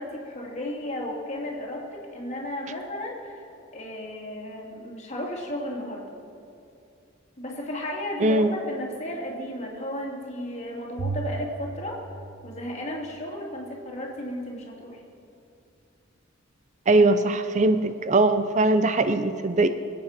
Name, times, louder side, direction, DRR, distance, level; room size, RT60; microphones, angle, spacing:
voice 1, 0.0-3.4 3.7-6.0 7.4-12.0 12.4-15.0, left 1 dB, 35° left, -2 dB, 2.7 m, -34 dB
Bowed string instrument, 11.0-13.4, right 4 dB, 80° right, 0.6 m, -36 dB
voice 2, 16.9-19.7, right 2 dB, 35° right, 10 dB, 0.5 m, -21 dB
24.5 x 8.5 x 5.9 m, 2.6 s
head